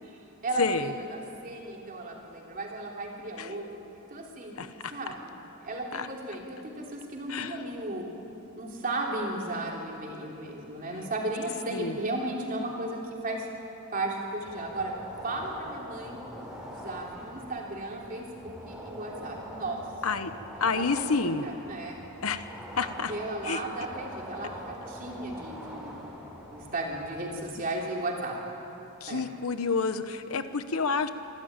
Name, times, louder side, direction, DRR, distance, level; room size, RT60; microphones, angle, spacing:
voice 1, 0.0-3.6 4.1-5.3 5.6-8.1 8.6-13.5 13.9-14.9 15.2-16.2 16.6-19.8 20.5-22.0 22.8-26.0 26.5-28.4 29.1-29.2, right 2 dB, 40° right, -1 dB, 3.2 m, -35 dB
voice 2, 0.6-0.9 3.4-3.5 4.6-4.9 5.9-6.1 7.3-7.6 11.7-12.0 20.0-20.3 20.6-21.5 22.2-22.4 22.8-23.1 23.4-23.6 29.0-31.1, left 4 dB, 85° left, 10 dB, 1.0 m, -29 dB
sound 1, 14.4-27.4, equal, 5° right, 3.4 m, -44 dB
25.0 x 12.5 x 8.9 m, 3.0 s
head